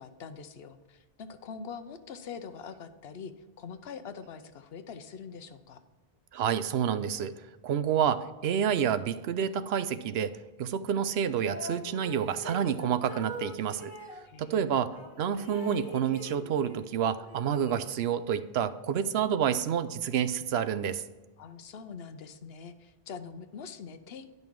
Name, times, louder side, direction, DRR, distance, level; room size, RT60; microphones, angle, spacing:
voice 1, 0.0-5.8 14.2-14.9 21.4-24.3, left 6 dB, 75° left, 10 dB, 0.9 m, -44 dB
voice 2, 6.3-7.3 7.6-10.3 10.6-13.9 14.4-14.9 15.2-21.0, right 8 dB, 80° right, 12 dB, 0.8 m, -29 dB
sound 1, 11.4-14.2 14.9-16.9 17.2-18.3, equal, 20° left, 1.7 m, -43 dB
10.5 x 5.5 x 4.6 m, 1.2 s
omnidirectional pair, 1.1 m